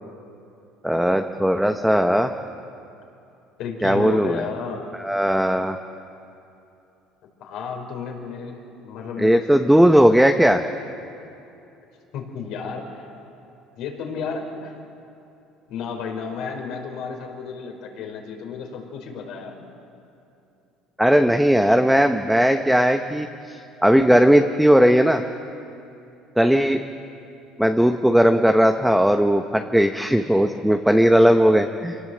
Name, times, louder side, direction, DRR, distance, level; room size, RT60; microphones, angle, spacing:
voice 1, 0.8-2.3 3.8-4.4 5.0-5.8 9.2-10.6 21.0-25.2 26.4-26.8 27.6-32.0, equal, ahead, 6 dB, 0.9 m, -17 dB
voice 2, 3.6-4.9 7.2-9.5 12.1-13.1 13.8-14.7 15.7-19.6, left 5 dB, 65° left, 2 dB, 4.6 m, -32 dB
25.5 x 18.0 x 7.8 m, 2.7 s
supercardioid pair, 105°, 0 cm